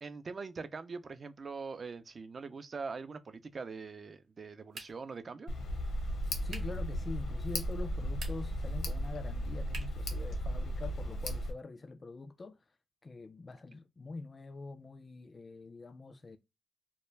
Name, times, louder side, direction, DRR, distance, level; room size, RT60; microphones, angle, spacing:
voice 1, 0.0-5.5, right 4 dB, 50° right, 0.4 m, -43 dB
sound 1, 4.7-5.2 6.5-6.8 8.0-8.6 9.7-10.1, right 3 dB, 80° right, 0.8 m, -47 dB
Tick, 5.5-11.5, equal, 80° left, 0.6 m, -35 dB
voice 2, 6.4-12.6 13.0-16.4, left 3 dB, 40° left, 0.3 m, -45 dB
2.1 x 2.1 x 3.2 m
supercardioid pair, 55°, 0 cm